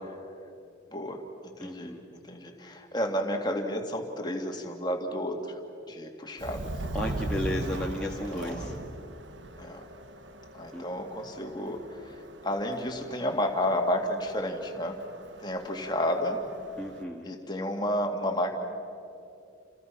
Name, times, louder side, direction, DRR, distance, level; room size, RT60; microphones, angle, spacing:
voice 1, 0.9-5.6 5.9-6.7 7.9-8.7 9.6-9.9 10.5-12.2 12.4-15.0 15.4-16.4 17.2-18.5, left 1 dB, 20° left, 3 dB, 2.3 m, -31 dB
voice 2, 1.6-2.0 6.9-8.7 10.7-10.8 16.8-17.3, left 1 dB, 5° left, -4 dB, 1.6 m, -34 dB
Subway metro underground, 6.4-17.0, right 1 dB, 65° right, 1.3 m, -40 dB
30.0 x 28.5 x 6.0 m, 2.6 s
head